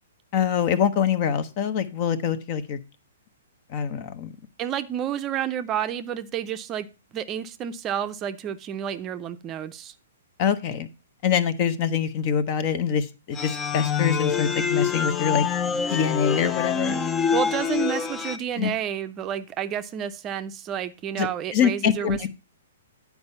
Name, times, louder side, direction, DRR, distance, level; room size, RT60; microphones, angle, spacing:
voice 1, 0.3-2.8 3.7-4.3 10.4-10.9 11.2-15.4 15.9-17.0 18.6-18.7 21.2-22.3, left 7 dB, 40° left, 0.9 m, -24 dB
voice 2, 4.6-6.9 7.1-9.9 17.3-22.3, right 9 dB, 25° right, 0.6 m, -30 dB
sound 1, 13.3-18.4, left 7 dB, 20° left, 0.5 m, -26 dB
9.6 x 4.7 x 5.4 m
hypercardioid pair, 125°, 0 cm